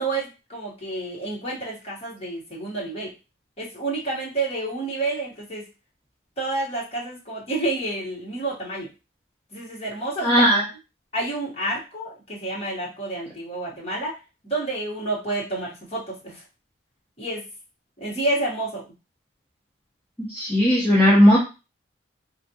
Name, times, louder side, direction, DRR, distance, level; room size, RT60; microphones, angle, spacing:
voice 1, 0.0-3.1 3.6-5.6 6.4-8.9 9.5-10.3 11.1-14.1 14.4-16.3 17.2-17.4 18.0-18.8, right 2 dB, 30° left, -4 dB, 1.2 m, -29 dB
voice 2, 10.2-10.6 20.2-21.4, equal, 10° left, -5 dB, 0.7 m, -17 dB
3.5 x 2.5 x 2.8 m, 0.29 s
head